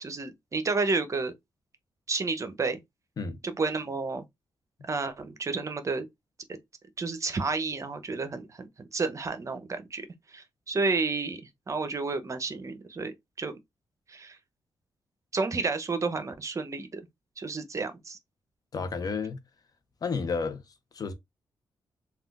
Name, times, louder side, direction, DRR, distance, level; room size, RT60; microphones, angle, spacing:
voice 1, 0.0-1.3 2.1-2.8 3.4-4.2 4.8-6.1 7.0-10.1 10.3-11.4 11.7-13.6 14.1-14.4 15.3-17.0 17.4-18.2, right 4 dB, 40° right, 0.7 m, -31 dB
voice 2, 18.7-19.4 20.0-20.6 20.9-21.1, left 4 dB, 50° left, 0.6 m, -31 dB
3.6 x 2.3 x 2.4 m
cardioid pair, 70°, 8 cm